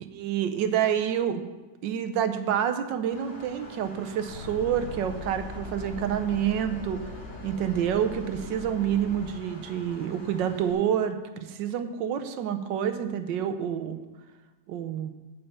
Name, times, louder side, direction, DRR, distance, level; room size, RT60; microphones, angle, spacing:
voice 1, 0.1-1.4 1.8-7.0 7.4-14.0 14.7-15.1, right 9 dB, 75° right, 8 dB, 1.4 m, -28 dB
Engine, 3.1-10.7, left 1 dB, 65° left, 2.4 m, -46 dB
sound 1, 4.3-9.3, left 4 dB, 45° left, 1.1 m, -41 dB
8.8 x 5.5 x 7.1 m, 1.2 s
omnidirectional pair, 2.0 m